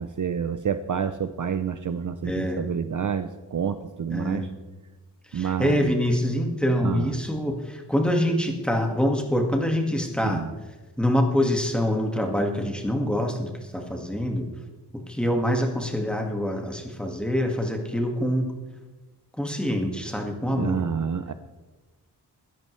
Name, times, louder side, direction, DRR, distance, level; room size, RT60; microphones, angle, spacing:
voice 1, 0.0-4.5 5.3-5.9 6.8-7.1 10.2-10.5 20.5-21.3, right 7 dB, 50° right, 10 dB, 0.6 m, -28 dB
voice 2, 2.2-2.6 4.1-4.5 5.3-10.4 11.0-14.5 15.1-18.5 19.4-20.8, equal, ahead, 2 dB, 1.8 m, -25 dB
21.0 x 11.0 x 3.2 m, 1.2 s
wide cardioid pair, 130°, 41 cm